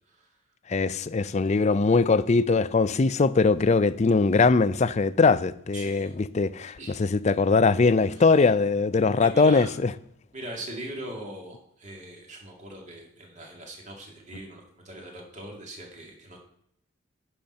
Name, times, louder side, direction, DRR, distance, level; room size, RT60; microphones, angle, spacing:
voice 1, 0.7-9.9, left 4 dB, 35° left, 0.4 m, -21 dB
voice 2, 5.7-6.1 6.8-7.0 9.2-9.7 10.3-16.4, right 1 dB, 35° right, 2.3 m, -41 dB
10.5 x 4.4 x 6.5 m
head